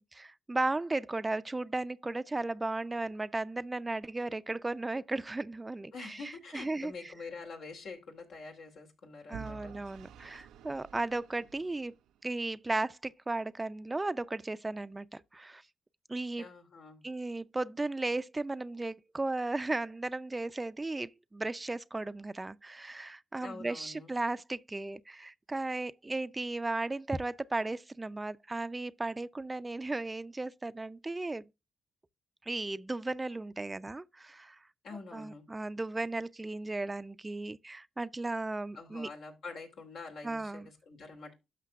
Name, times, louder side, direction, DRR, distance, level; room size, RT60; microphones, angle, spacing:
voice 1, 0.0-6.9 9.3-11.9 12.2-15.6 16.1-16.4 17.0-31.4 32.5-34.6 35.1-39.1 40.2-40.7, right 2 dB, 25° right, 0.5 m, -35 dB
voice 2, 5.9-9.7 16.4-17.0 23.4-24.1 34.8-35.4 38.7-41.3, left 4 dB, 75° left, 2.8 m, -46 dB
Vehicle / Engine, 9.3-12.3, right 7 dB, 85° right, 0.4 m, -50 dB
12.5 x 5.8 x 2.4 m
supercardioid pair, 55°, 0 cm